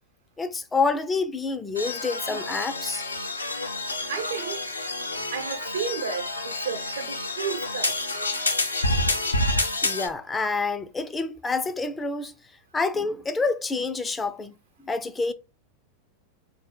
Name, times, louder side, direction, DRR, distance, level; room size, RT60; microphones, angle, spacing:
voice 1, 0.4-3.0 9.8-12.3 12.7-14.5 14.8-15.3, left 4 dB, 15° left, 0.3 m, -27 dB
sound 1, 1.7-10.1, left 2 dB, 80° left, 0.6 m, -28 dB
voice 2, 4.1-4.6 5.3-7.9, right 7 dB, 65° right, 0.6 m, -32 dB
4.0 x 2.6 x 2.2 m
figure-of-eight pair, 90°, 0 cm